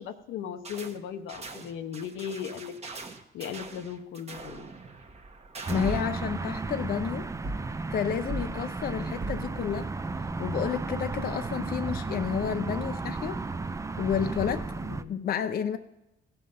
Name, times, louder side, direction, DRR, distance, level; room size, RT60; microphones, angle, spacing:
voice 1, 0.0-2.7 3.3-4.7 14.8-15.2, left 8 dB, 85° left, 8 dB, 0.8 m, -37 dB
sound 1, 0.6-1.0 1.3-6.1, right 3 dB, 30° right, 1.0 m, -44 dB
voice 2, 5.7-7.3 7.9-9.9 10.4-13.4 14.0-14.7 15.1-15.8, left 8 dB, 50° left, 10 dB, 0.5 m, -30 dB
sound 2, 5.7-15.0, right 3 dB, 15° right, 0.4 m, -34 dB
sound 3, 5.8-6.2 7.4-7.8 8.3-8.5 9.2-9.5, right 2 dB, 70° right, 1.2 m, -35 dB
16.0 x 5.5 x 5.5 m, 0.96 s
cardioid pair, 90°, 20 cm